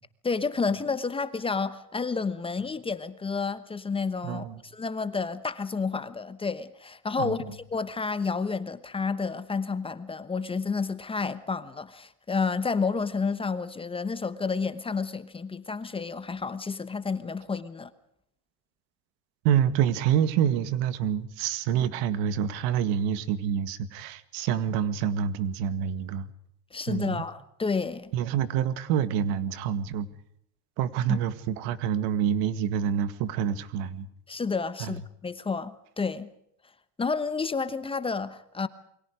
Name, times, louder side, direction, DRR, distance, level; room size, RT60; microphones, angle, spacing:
voice 1, 0.2-17.9 26.7-28.1 31.1-31.2 34.3-36.3 37.0-38.7, left 4 dB, 15° left, 1.0 m, -30 dB
voice 2, 4.2-4.6 7.2-7.4 19.4-26.3 26.9-27.2 28.1-30.1 30.8-34.1 34.8-35.0, right 9 dB, 70° right, 2.0 m, -27 dB
28.5 x 23.0 x 5.0 m
cardioid pair, 150°, 38 cm